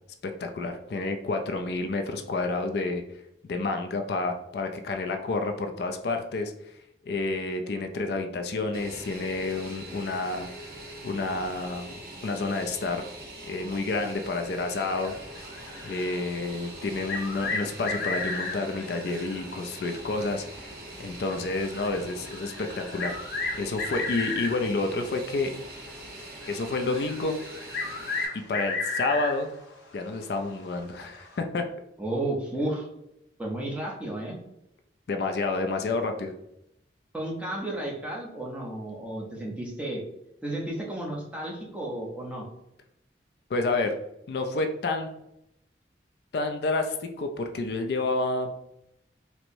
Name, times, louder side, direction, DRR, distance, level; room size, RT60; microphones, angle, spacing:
voice 1, 0.4-3.0 3.4-6.5 7.1-10.5 11.0-12.0 12.2-13.0 13.5-15.1 15.8-23.2 23.5-25.5 26.5-27.4 28.5-29.5 29.9-31.6 35.1-36.3 43.5-43.9 44.3-45.1 46.3-48.5, left 3 dB, 60° left, 5 dB, 0.3 m, -29 dB
Fixed-wing aircraft airplane, 8.7-28.3, right 1 dB, 55° right, 0.8 m, -43 dB
sound 1, 14.9-16.5 16.9-19.6 19.8-19.9 20.6-20.7 21.3-24.9 25.6-25.8 26.4-29.6 30.0-30.1 31.1-31.4, left 3 dB, 80° left, 0.8 m, -34 dB
voice 2, 32.0-32.9 33.4-34.4 37.1-40.0 40.4-42.5, right 1 dB, 5° right, -3 dB, 0.6 m, -32 dB
4.4 x 2.0 x 2.6 m, 0.80 s
head